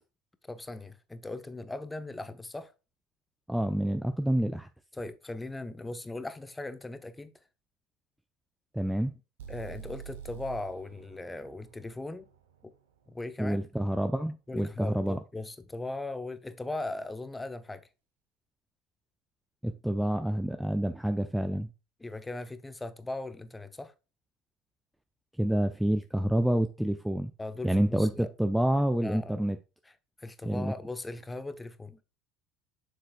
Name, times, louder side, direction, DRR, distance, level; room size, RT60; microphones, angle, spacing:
voice 1, 0.5-2.7 4.9-7.3 9.5-12.3 12.6-12.7 13.1-13.6 14.5-17.8 22.0-23.9 27.4-28.3 29.0-29.5 30.2-32.0, left 2 dB, 15° left, 1.0 m, -39 dB
voice 2, 3.5-4.7 8.7-9.1 13.4-15.2 19.6-21.7 25.4-27.3 27.6-29.6 30.4-30.7, right 1 dB, 5° right, 0.6 m, -28 dB
sound 1, 9.4-13.3, right 9 dB, 80° right, 1.1 m, -47 dB
7.6 x 6.7 x 2.4 m
hypercardioid pair, 70°, 0 cm